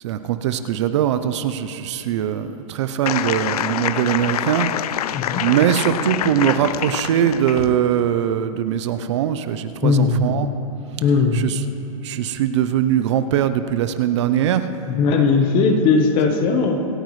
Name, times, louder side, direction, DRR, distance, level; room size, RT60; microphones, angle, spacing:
voice 1, 0.0-4.7 5.4-10.5 11.3-11.6 11.9-14.7, right 10 dB, 50° right, 10 dB, 0.6 m, -21 dB
sound 1, 3.1-7.8, left 11 dB, 85° left, 0.4 m, -26 dB
voice 2, 5.1-5.4 9.8-10.5 11.0-11.5 14.9-16.8, left 4 dB, 25° left, 5 dB, 1.0 m, -18 dB
26.0 x 9.0 x 3.2 m, 2.9 s
hypercardioid pair, 160°, 19 cm